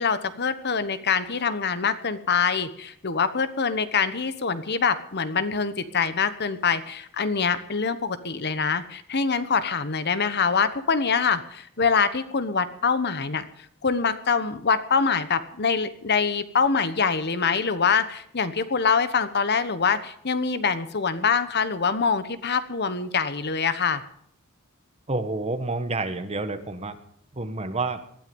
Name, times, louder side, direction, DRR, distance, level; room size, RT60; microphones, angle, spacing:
voice 1, 0.0-13.4 13.8-24.0, left 5 dB, 50° left, 13 dB, 1.2 m, -24 dB
voice 2, 25.1-27.0 27.3-28.0, right 3 dB, 30° right, 9 dB, 1.5 m, -29 dB
19.5 x 13.0 x 5.4 m, 0.66 s
head